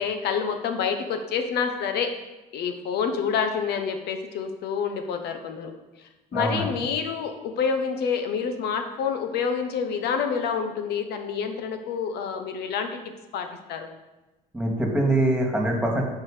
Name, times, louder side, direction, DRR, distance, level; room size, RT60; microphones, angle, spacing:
voice 1, 0.0-2.1 2.5-5.7 6.3-13.0 13.3-13.9, left 6 dB, 75° left, 6 dB, 1.1 m, -28 dB
voice 2, 6.3-6.7 14.5-16.0, right 1 dB, 5° right, 0 dB, 2.2 m, -23 dB
10.5 x 4.8 x 5.1 m, 1.1 s
cardioid pair, 110°, 17 cm